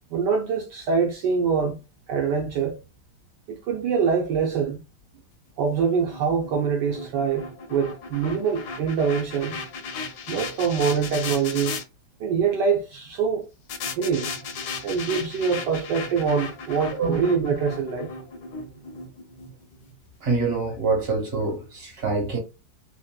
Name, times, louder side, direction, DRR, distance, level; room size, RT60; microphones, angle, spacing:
voice 1, 0.1-1.8 2.1-2.8 3.5-4.8 5.6-9.6 10.3-11.8 12.2-13.4 14.0-14.3 14.8-18.1, right 6 dB, 70° right, 1.3 m, -24 dB
sound 1, 5.6-11.8 13.7-19.9, left 4 dB, 70° left, 1.1 m, -36 dB
voice 2, 20.2-22.4, right 4 dB, 35° right, 1.5 m, -25 dB
3.4 x 2.8 x 2.2 m
omnidirectional pair, 2.0 m